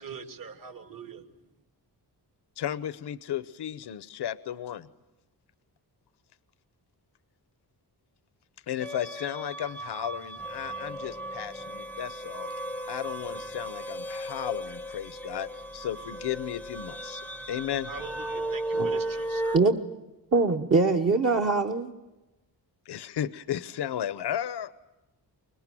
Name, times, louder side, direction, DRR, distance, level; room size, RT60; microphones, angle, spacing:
voice 1, 0.0-1.3 17.2-17.3 17.8-19.6, right 6 dB, 55° right, 2.4 m, -43 dB
voice 2, 2.6-4.9 8.7-12.5 12.9-17.2 17.5-17.9 22.9-24.7, left 10 dB, 75° left, 0.9 m, -34 dB
sound 1, 8.8-19.6, right 1 dB, 5° left, 0.8 m, -35 dB
voice 3, 20.3-21.9, right 3 dB, 35° right, 1.2 m, -23 dB
25.5 x 21.5 x 9.1 m
wide cardioid pair, 160°, 40 cm